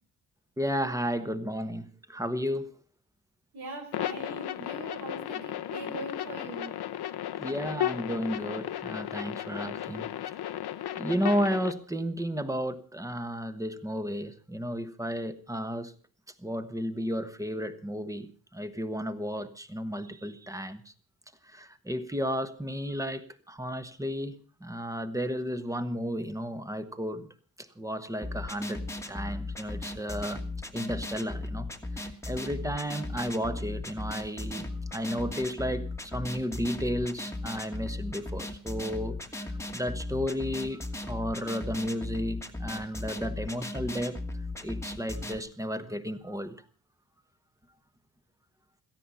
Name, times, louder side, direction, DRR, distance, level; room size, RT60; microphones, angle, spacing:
voice 1, 0.6-2.7 7.4-10.1 10.9-15.9 16.4-20.9 21.4-27.3 27.6-28.8 29.1-30.4 30.7-44.2 44.6-46.6, equal, 10° right, 1.2 m, -33 dB
voice 2, 3.5-6.8, right 1 dB, 80° right, 4.8 m, -41 dB
sound 1, 3.9-11.7, left 12 dB, 90° left, 1.0 m, -35 dB
sound 2, 28.2-45.4, left 2 dB, 5° left, 1.5 m, -37 dB
17.0 x 14.0 x 5.6 m
wide cardioid pair, 135°, 37 cm